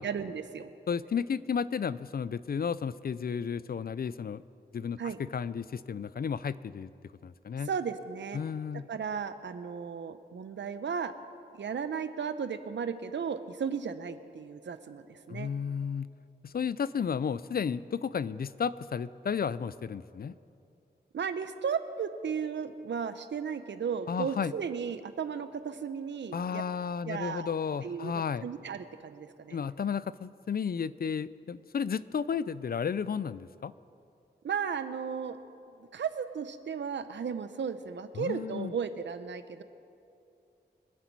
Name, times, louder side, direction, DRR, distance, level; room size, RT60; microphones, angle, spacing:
voice 1, 0.0-0.7 5.0-5.2 7.7-8.4 8.9-11.1 11.5-15.5 21.1-26.6 27.0-27.5 27.8-29.6 34.4-35.4 35.9-39.6, right 6 dB, 90° right, 11 dB, 0.7 m, -35 dB
voice 2, 0.9-4.4 4.7-6.9 7.2-7.7 8.3-8.9 15.3-16.1 16.4-20.3 24.1-24.5 26.3-28.5 29.5-33.7 38.1-38.7, left 6 dB, 55° left, 17 dB, 0.4 m, -33 dB
25.0 x 8.3 x 4.6 m, 2.6 s
cardioid pair, 50°, 18 cm